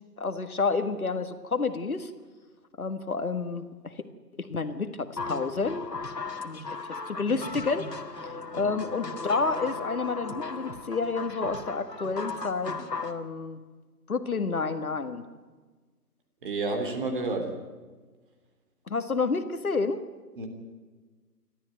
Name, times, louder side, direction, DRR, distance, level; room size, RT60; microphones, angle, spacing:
voice 1, 0.2-2.1 2.8-4.0 4.4-5.8 6.4-6.6 7.1-7.9 8.5-13.6 14.1-15.2 18.9-20.0, left 4 dB, 60° left, 10 dB, 1.8 m, -29 dB
sound 1, 5.2-13.2, left 3 dB, 80° left, 2.4 m, -37 dB
voice 2, 16.4-17.6 20.4-20.5, right 3 dB, 30° right, 5 dB, 3.4 m, -30 dB
27.0 x 13.0 x 9.1 m, 1.4 s
figure-of-eight pair, 150°, 48 cm